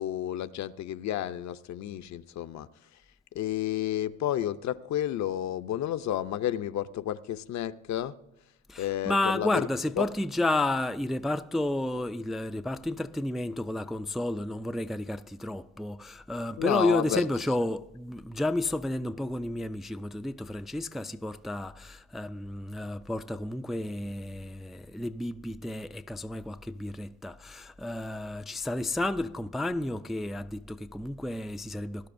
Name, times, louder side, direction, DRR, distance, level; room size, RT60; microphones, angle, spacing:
voice 1, 0.0-2.7 3.3-8.1 8.8-9.7 10.0-10.1 16.6-17.3, left 12 dB, 65° left, 0.6 m, -31 dB
voice 2, 8.7-32.1, left 1 dB, ahead, 0.3 m, -31 dB
19.0 x 11.5 x 2.6 m
cardioid pair, 90°, 30 cm